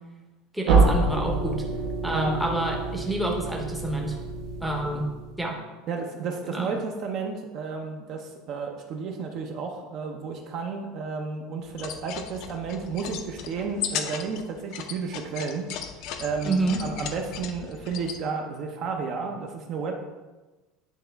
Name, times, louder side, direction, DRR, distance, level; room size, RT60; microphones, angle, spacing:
voice 1, 0.5-1.6 2.0-4.2 4.6-5.1 5.4-5.6 6.5-6.7 16.4-16.8, right 2 dB, 5° right, -1 dB, 0.7 m, -28 dB
sound 1, 0.7-5.5, right 3 dB, 75° right, 1.5 m, -26 dB
voice 2, 5.9-15.7 16.2-20.0, right 5 dB, 40° right, 3 dB, 0.6 m, -32 dB
sound 2, 11.7-18.2, left 8 dB, 45° left, 0.5 m, -36 dB
9.2 x 3.9 x 3.4 m, 1.2 s
cardioid pair, 180°, 0 cm